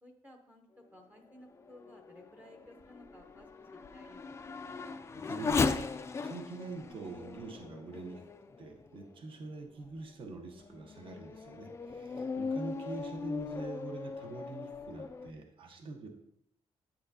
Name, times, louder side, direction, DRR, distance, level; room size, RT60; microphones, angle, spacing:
voice 1, 0.0-4.2, left 1 dB, 15° right, 2 dB, 0.8 m, -56 dB
Race car auto racing / Accelerating revving vroom, 1.3-9.2 9.8-9.9 10.5-15.3, left 4 dB, 25° left, 0.3 m, -38 dB
voice 2, 5.1-8.2 8.6-16.1, right 3 dB, 50° right, 3 dB, 1.1 m, -44 dB
8.8 x 8.5 x 2.8 m, 0.76 s
wide cardioid pair, 170°, 11 cm